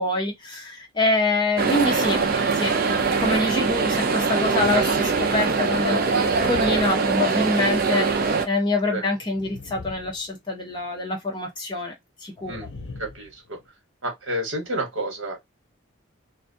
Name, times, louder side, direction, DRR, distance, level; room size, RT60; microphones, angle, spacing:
voice 1, 0.0-2.2 2.5-2.7 3.2-11.9 12.2-12.6, left 2 dB, 20° left, 0.8 m, -25 dB
sound 1, 1.6-8.5, right 4 dB, 45° right, 0.4 m, -22 dB
sound 2, 6.1-7.7 9.2-10.8 12.4-13.6, left 3 dB, 60° left, 0.6 m, -41 dB
voice 2, 13.0-13.6 14.0-15.4, right 1 dB, 80° right, 1.1 m, -30 dB
2.4 x 2.2 x 2.6 m
head